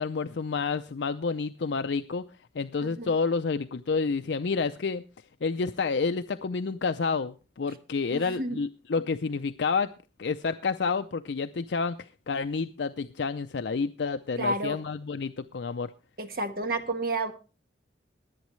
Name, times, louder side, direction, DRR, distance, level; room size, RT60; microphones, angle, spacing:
voice 1, 0.0-2.2 2.5-5.0 5.4-9.9 10.2-15.9, left 4 dB, 65° left, 10 dB, 0.5 m, -29 dB
voice 2, 2.8-3.1 8.1-8.6 14.4-14.8 16.2-17.3, right 2 dB, 50° right, 7 dB, 1.3 m, -31 dB
22.0 x 8.2 x 3.1 m, 0.33 s
head